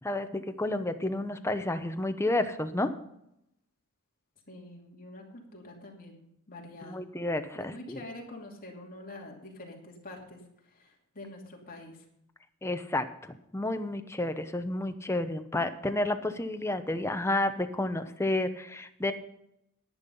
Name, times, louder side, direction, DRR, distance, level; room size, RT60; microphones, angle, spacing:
voice 1, 0.0-2.9 6.9-8.0 12.6-19.1, left 1 dB, 10° left, 8 dB, 0.8 m, -31 dB
voice 2, 4.5-7.0 7.6-12.0, left 1 dB, 40° left, 0 dB, 2.8 m, -46 dB
10.5 x 10.0 x 5.5 m, 0.78 s
head